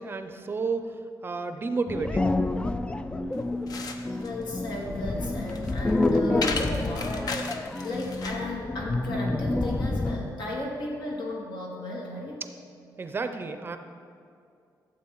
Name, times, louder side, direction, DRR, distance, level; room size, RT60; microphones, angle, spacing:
voice 1, 0.0-2.3 13.0-13.8, right 4 dB, 30° right, 8 dB, 0.6 m, -31 dB
sound 1, 1.9-10.4, left 2 dB, 15° left, 0.3 m, -28 dB
sound 2, 3.3-8.5, left 4 dB, 55° left, 0.8 m, -36 dB
voice 2, 4.1-7.4 7.8-12.4, left 1 dB, 80° left, -2 dB, 2.4 m, -35 dB
12.5 x 7.6 x 4.7 m, 2.4 s
cardioid pair, 140°, 8 cm